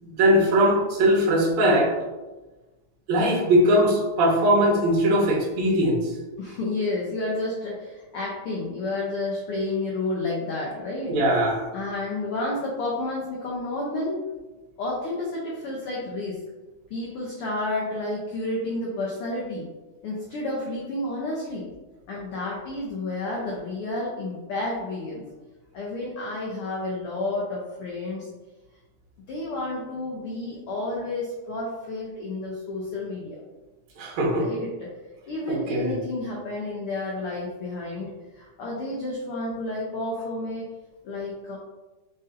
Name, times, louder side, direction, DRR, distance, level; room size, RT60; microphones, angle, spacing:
voice 1, 0.0-1.9 3.1-6.0 11.1-11.7 34.0-34.5 35.5-35.9, equal, 75° right, -2 dB, 2.2 m, -20 dB
voice 2, 6.4-11.2 11.7-14.2 14.8-16.4 16.9-19.7 20.0-21.7 22.1-25.2 25.7-28.3 29.3-33.4 34.3-34.9 35.3-40.7 41.0-41.6, left 2 dB, 80° left, -4 dB, 1.2 m, -30 dB
5.3 x 2.6 x 3.8 m, 1.2 s
omnidirectional pair, 3.4 m